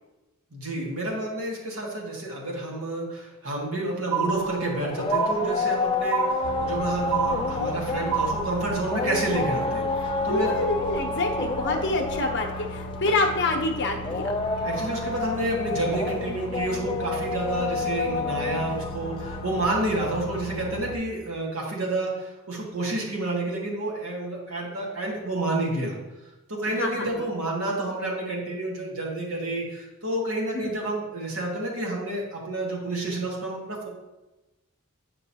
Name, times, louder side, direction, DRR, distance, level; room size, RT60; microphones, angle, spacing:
voice 1, 0.5-10.6 14.6-25.9 26.5-33.9, right 2 dB, 70° right, -2 dB, 1.7 m, -29 dB
sound 1, 4.1-4.8 5.1-5.8 6.1-6.8 7.1-7.8 8.1-8.8, right 7 dB, 30° right, 0.9 m, -28 dB
sound 2, 4.2-20.6, left 3 dB, 25° left, 0.4 m, -30 dB
sound 3, 6.4-21.0, equal, 85° left, 0.6 m, -37 dB
voice 2, 10.3-14.3 26.7-27.3 30.5-30.7, left 2 dB, 55° left, 3 dB, 0.8 m, -27 dB
8.7 x 5.3 x 2.8 m, 1.0 s
head